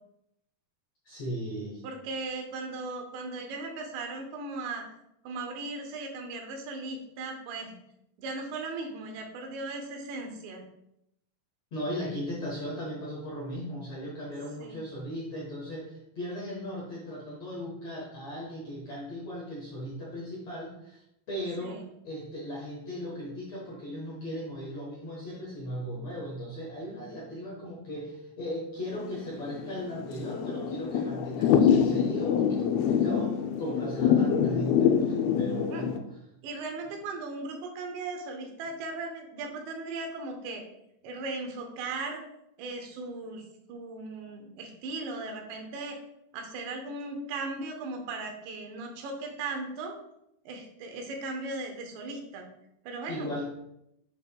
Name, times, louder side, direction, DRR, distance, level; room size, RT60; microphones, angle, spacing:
voice 1, 1.0-1.8 11.7-36.2 53.1-53.5, equal, 70° left, -4 dB, 1.6 m, -37 dB
voice 2, 1.8-4.8 5.2-7.7 8.2-10.6 14.6-14.8 21.6-21.9 35.7-35.9 36.4-40.6 41.0-42.2 42.6-46.0 46.3-50.0 50.5-52.4 52.8-53.3, right 3 dB, 85° right, 3 dB, 3.2 m, -37 dB
Thunder / Rain, 28.9-36.0, left 8 dB, 90° left, 2.1 m, -25 dB
8.3 x 5.6 x 2.2 m, 0.80 s
omnidirectional pair, 4.9 m